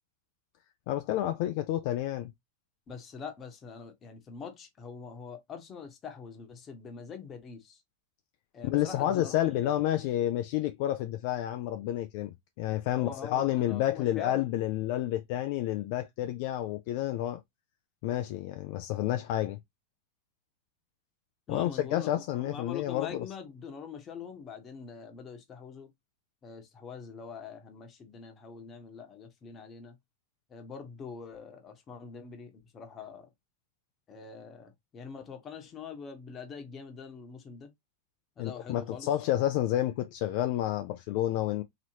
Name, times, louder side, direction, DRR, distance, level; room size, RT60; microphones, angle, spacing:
voice 1, 0.9-2.3 8.6-17.4 18.0-19.6 21.5-23.2 38.4-41.6, left 13 dB, 55° left, 0.4 m, -30 dB
voice 2, 2.9-7.8 8.5-9.8 12.9-14.4 21.5-22.1 22.3-25.9 26.4-30.0 30.5-33.3 34.1-37.7 38.4-39.1, left 6 dB, 30° left, 1.0 m, -44 dB
3.0 x 2.9 x 2.8 m
hypercardioid pair, 105°, 0 cm